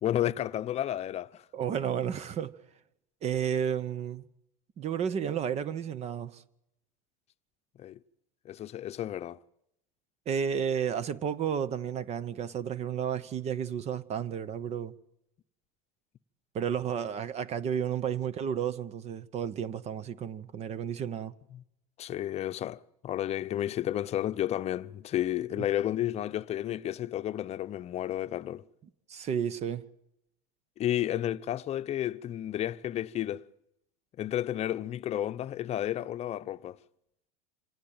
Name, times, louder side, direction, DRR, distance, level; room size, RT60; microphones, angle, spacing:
voice 1, 0.0-1.4 7.8-8.0 8.4-9.4 21.5-21.6 22.0-28.6 30.8-33.4 34.2-36.8, left 12 dB, 35° left, 0.8 m, -32 dB
voice 2, 1.5-2.5 3.2-4.2 4.8-6.4 10.3-14.9 16.5-21.3 29.1-29.8, right 8 dB, 40° right, 1.0 m, -32 dB
26.5 x 18.0 x 9.0 m
supercardioid pair, 105°, 18 cm